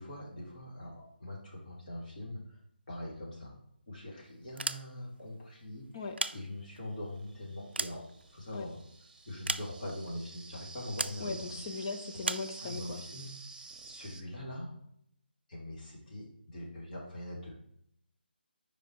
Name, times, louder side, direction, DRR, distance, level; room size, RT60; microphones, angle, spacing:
voice 1, 0.0-2.6 2.9-3.6 3.9-5.9 6.3-8.0 8.3-8.8 9.2-11.5 12.6-13.3 13.8-14.7 15.5-17.6, left 1 dB, 50° left, -4 dB, 2.7 m, -42 dB
sound 1, 4.4-5.3 5.9-6.9 7.4-8.7 9.5-10.1 11.0-11.3 12.2-12.5, right 3 dB, 75° right, 0.3 m, -36 dB
sound 2, 5.7-5.8 6.7-14.2, right 4 dB, 45° right, 0.8 m, -50 dB
voice 2, 11.2-13.0, left 4 dB, 25° left, 6 dB, 0.4 m, -39 dB
5.0 x 5.0 x 4.6 m, 0.72 s
figure-of-eight pair, 150°, 6 cm